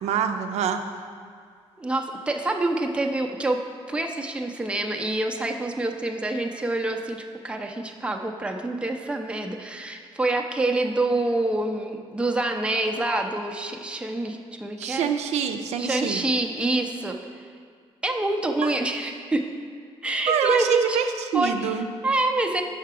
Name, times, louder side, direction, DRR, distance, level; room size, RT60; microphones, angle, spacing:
voice 1, 0.0-0.8 14.8-16.2 18.6-18.8 20.3-21.9, right 7 dB, 85° right, 7 dB, 0.4 m, -25 dB
voice 2, 1.8-3.6 3.9-15.1 15.8-17.2 18.0-19.4 20.0-21.0 21.3-22.6, right 2 dB, 10° right, 3 dB, 0.5 m, -26 dB
5.9 x 5.7 x 4.7 m, 2.1 s
cardioid pair, 110°, 11 cm